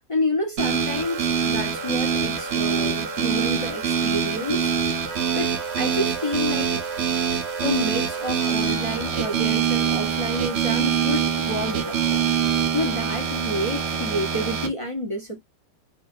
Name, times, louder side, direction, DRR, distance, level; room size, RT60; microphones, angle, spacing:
voice 1, 0.1-4.7 5.3-6.8 7.6-12.3 12.7-15.4, left 1 dB, 45° left, 0.4 m, -29 dB
sound 1, 0.6-14.7, right 7 dB, 55° right, 0.8 m, -24 dB
3.0 x 2.5 x 2.4 m
omnidirectional pair, 1.7 m